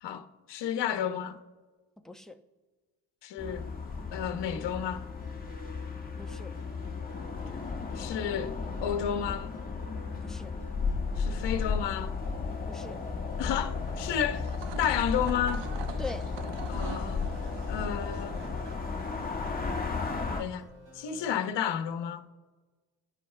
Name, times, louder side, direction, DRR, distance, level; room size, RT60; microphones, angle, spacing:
voice 1, 0.0-1.4 3.2-3.7 4.1-5.0 7.9-9.6 11.2-12.1 13.4-15.6 16.7-17.3 17.7-18.6 20.4-20.7 20.9-22.2, left 9 dB, 70° left, 1.2 m, -32 dB
voice 2, 2.0-2.4 6.2-6.5 10.2-10.6 12.7-13.0 16.0-16.3, left 2 dB, ahead, 1.0 m, -41 dB
sound 1, 3.4-20.4, left 4 dB, 20° left, 1.7 m, -34 dB
sound 2, 4.1-21.4, equal, 35° right, 3.7 m, -52 dB
sound 3, 14.3-20.2, right 7 dB, 70° right, 1.1 m, -46 dB
29.5 x 10.0 x 3.4 m
cardioid pair, 90°, 44 cm